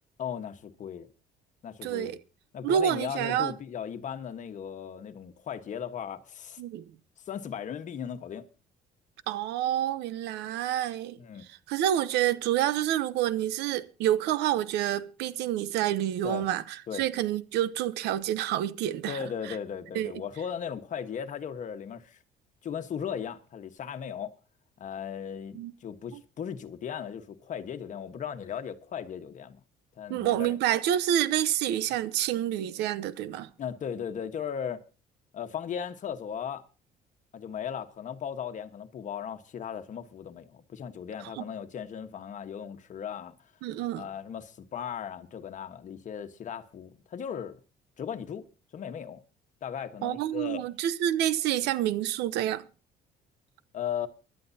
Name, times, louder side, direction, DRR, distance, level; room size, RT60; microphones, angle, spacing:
voice 1, 0.2-1.1 1.6-2.2 2.5-6.6 7.3-8.5 11.2-11.4 16.2-16.5 16.9-17.0 19.1-22.2 22.6-24.3 24.8-29.6 30.0-30.6 33.6-34.8 35.3-36.6 37.3-43.3 43.9-47.6 48.0-48.5 48.7-49.2 49.6-50.6 53.7-54.1, left 8 dB, 45° left, 1.3 m, -37 dB
voice 2, 1.8-2.2 2.6-3.5 6.6-6.8 9.3-11.2 11.7-19.2 19.5-19.6 19.9-20.1 25.5-25.7 30.1-33.5 41.4-41.5 43.6-44.1 50.0-52.6, right 11 dB, 85° right, 0.8 m, -28 dB
24.5 x 11.5 x 2.8 m
cardioid pair, 110°, 17 cm